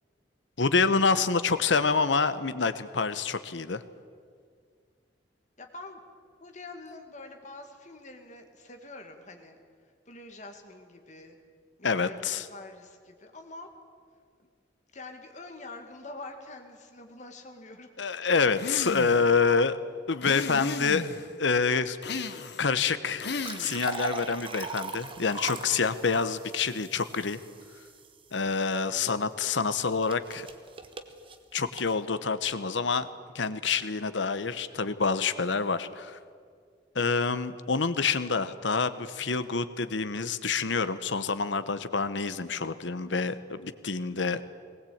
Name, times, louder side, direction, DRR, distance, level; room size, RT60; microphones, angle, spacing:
voice 1, 0.6-3.8 11.8-12.5 18.0-19.8 20.1-21.1 21.4-22.0 22.6-23.3 23.6-27.4 28.3-30.5 31.5-33.1 33.3-36.2 36.9-44.4, left 4 dB, 80° left, 13 dB, 1.0 m, -27 dB
voice 2, 5.6-6.0 6.4-9.6 10.1-11.4 11.8-13.7 14.9-18.1 29.0-29.3, left 2 dB, 40° left, 5 dB, 2.2 m, -45 dB
sound 1, 18.6-19.3 20.2-21.3 22.0-22.7 23.2-24.0, left 4 dB, 65° left, 1.1 m, -35 dB
sound 2, 23.2-28.3 29.8-31.9, right 3 dB, 30° right, 1.3 m, -40 dB
19.5 x 19.5 x 8.7 m, 2.1 s
head